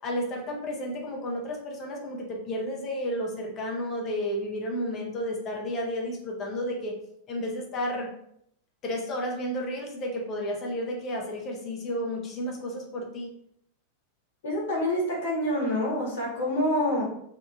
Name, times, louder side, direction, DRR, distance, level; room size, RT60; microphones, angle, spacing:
voice 1, 0.0-7.0 7.3-8.1 8.8-13.3, equal, 30° left, 0 dB, 0.6 m, -32 dB
voice 2, 14.4-17.0, left 1 dB, 60° left, -3 dB, 1.0 m, -27 dB
2.7 x 2.4 x 2.6 m, 0.72 s
figure-of-eight pair, 90°, 0 cm